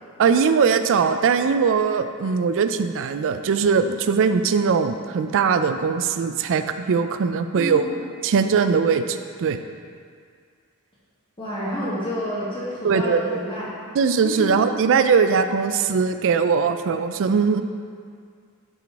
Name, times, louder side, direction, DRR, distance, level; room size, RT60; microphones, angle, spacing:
voice 1, 0.2-7.9 8.2-9.6 12.8-13.4 13.9-17.6, right 5 dB, 60° right, 9 dB, 0.4 m, -20 dB
voice 2, 7.5-7.9 11.4-13.7 14.2-14.5, equal, 20° left, -8 dB, 1.2 m, -29 dB
11.0 x 4.0 x 3.5 m, 2.1 s
head